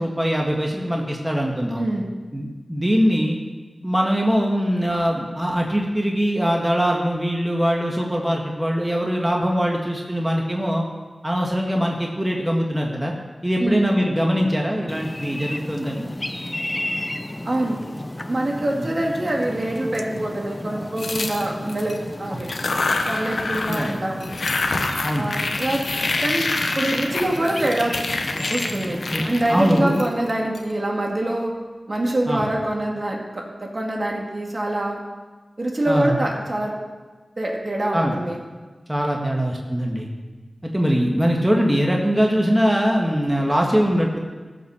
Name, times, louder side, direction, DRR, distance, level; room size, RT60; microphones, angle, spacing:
voice 1, 0.0-1.8 2.3-3.4 3.8-10.8 11.2-13.1 13.4-16.1 18.7-18.9 22.3-22.4 23.7-23.9 25.0-25.3 29.1-30.0 32.3-32.4 35.9-36.2 37.9-38.2 38.9-40.1 40.6-44.2, equal, 15° right, 0 dB, 1.7 m, -22 dB
voice 2, 1.8-2.1 13.6-13.9 17.5-17.8 18.3-22.5 23.1-24.4 25.2-25.8 26.2-26.5 26.8-28.0 28.5-29.0 29.2-31.5 31.9-35.0 35.6-36.7 37.4-38.4, right 1 dB, 50° right, -1 dB, 2.2 m, -25 dB
sound 1, 14.9-29.7, left 1 dB, 25° left, 0.7 m, -33 dB
sound 2, 21.0-22.0 22.4-23.9 24.2-30.6, left 2 dB, 75° left, 1.0 m, -26 dB
14.5 x 6.0 x 6.6 m, 1.3 s
cardioid pair, 40°, 0 cm